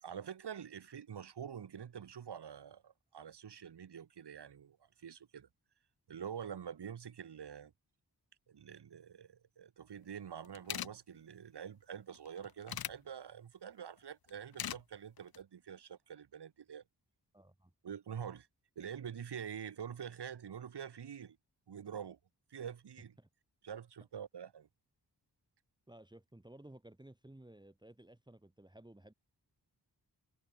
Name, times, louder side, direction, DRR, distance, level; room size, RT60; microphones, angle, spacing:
voice 1, 0.0-5.5 6.1-7.7 8.5-16.8 17.8-18.5 18.8-21.4 21.7-22.2 22.5-23.1 23.6-24.7, right 8 dB, 70° right, 1.1 m, -46 dB
sound 1, 10.2-10.3 10.4-10.9 12.1-12.9 14.3-14.8 15.2-15.4, left 10 dB, 60° left, 0.6 m, -40 dB
voice 2, 17.3-17.7 23.2-23.3 25.9-29.1, right 1 dB, 10° right, 1.7 m, -56 dB
wide cardioid pair, 105°, 42 cm